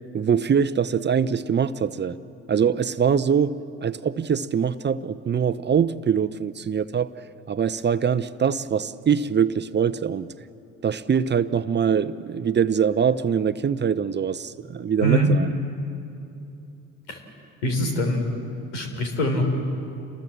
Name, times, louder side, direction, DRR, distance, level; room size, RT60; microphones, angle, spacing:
voice 1, 0.1-2.2 2.5-7.1 7.5-10.3 10.8-15.5, right 7 dB, 30° right, 14 dB, 0.8 m, -23 dB
voice 2, 15.0-15.3 17.1-17.2 17.6-18.3 18.7-19.4, right 1 dB, 85° left, 4 dB, 3.9 m, -23 dB
28.5 x 21.0 x 7.5 m, 2.7 s
hypercardioid pair, 55°, 35 cm